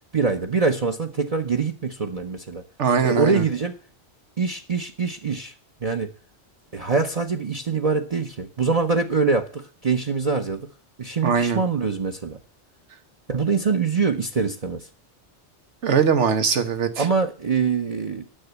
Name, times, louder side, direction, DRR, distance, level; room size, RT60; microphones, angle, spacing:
voice 1, 0.1-2.6 3.0-3.7 4.4-5.5 5.8-6.1 6.7-10.7 11.0-12.4 13.3-14.9 17.0-18.2, right 4 dB, 35° right, 7 dB, 0.9 m, -24 dB
voice 2, 2.8-3.4 11.2-11.6 15.8-17.0, right 6 dB, 90° right, 9 dB, 1.5 m, -21 dB
10.0 x 6.9 x 8.1 m, 0.40 s
omnidirectional pair, 1.2 m